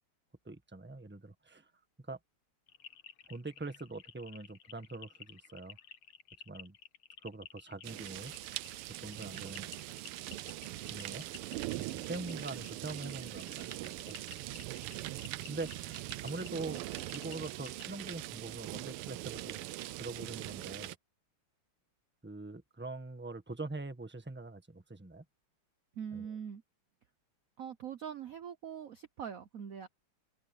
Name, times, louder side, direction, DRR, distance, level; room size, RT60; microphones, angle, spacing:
voice 1, 0.4-1.7 2.0-2.2 3.2-5.8 6.4-6.8 7.2-8.3 9.0-9.7 10.9-11.2 11.8-13.7 14.1-14.2 15.5-16.8 17.1-20.9 22.2-25.2 26.1-26.3, right 2 dB, 5° right, 1.2 m, -43 dB
sound 1, 2.7-17.9, left 9 dB, 70° left, 2.1 m, -54 dB
sound 2, 7.8-21.0, right 17 dB, 85° right, 1.5 m, -42 dB
voice 2, 26.0-26.6 27.6-29.9, right 8 dB, 70° right, 0.8 m, -42 dB
omnidirectional pair, 2.4 m